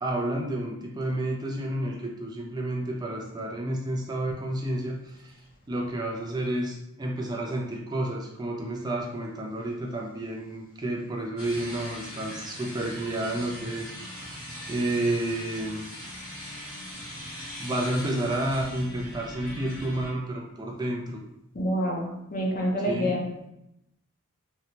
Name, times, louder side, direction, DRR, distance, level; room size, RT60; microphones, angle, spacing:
voice 1, 0.0-5.3 5.7-15.8 16.8-17.0 17.6-21.2 22.9-23.3, right 1 dB, 20° right, 0 dB, 0.3 m, -30 dB
sound 1, 11.4-20.1, equal, 70° left, 0.9 m, -40 dB
voice 2, 21.5-23.2, equal, 40° left, -1 dB, 0.5 m, -27 dB
2.7 x 2.1 x 2.8 m, 0.84 s
head